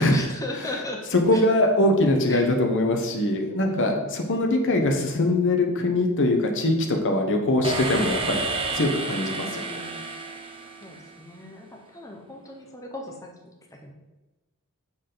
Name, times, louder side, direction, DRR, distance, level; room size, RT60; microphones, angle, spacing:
voice 1, 0.0-1.0 1.3-1.4 1.8-2.5 3.6-4.1 9.3-10.1 10.8-13.3 13.7-13.9, left 2 dB, 15° left, 1 dB, 1.0 m, -38 dB
voice 2, 1.1-8.5 8.7-9.8, left 1 dB, 60° left, 3 dB, 1.1 m, -22 dB
sound 1, 7.6-11.5, right 3 dB, 25° right, 0.9 m, -31 dB
7.3 x 6.7 x 4.0 m, 1.1 s
head